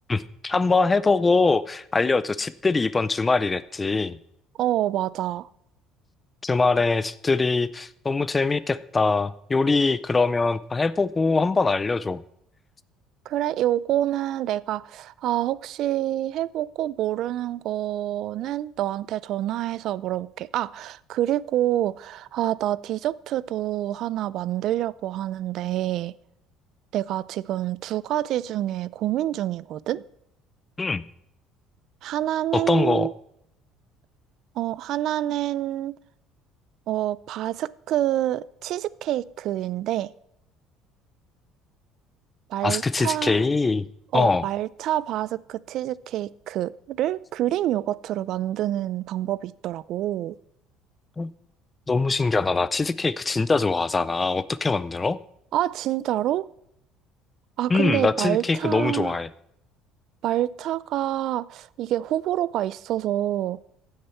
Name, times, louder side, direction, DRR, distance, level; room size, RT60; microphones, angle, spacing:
voice 1, 0.1-4.2 6.4-12.2 30.8-31.0 32.5-33.1 42.6-43.9 44.1-44.5 51.2-51.3 51.9-55.2 57.7-59.3, left 3 dB, 15° left, 0.4 m, -23 dB
voice 2, 4.6-5.5 13.3-26.1 26.9-30.0 32.0-33.1 34.6-36.0 36.9-40.1 42.5-43.4 44.1-50.4 55.5-56.5 57.6-59.2 60.2-63.6, right 13 dB, 55° right, 0.3 m, -27 dB
15.0 x 6.6 x 4.4 m
cardioid pair, 145°, 0 cm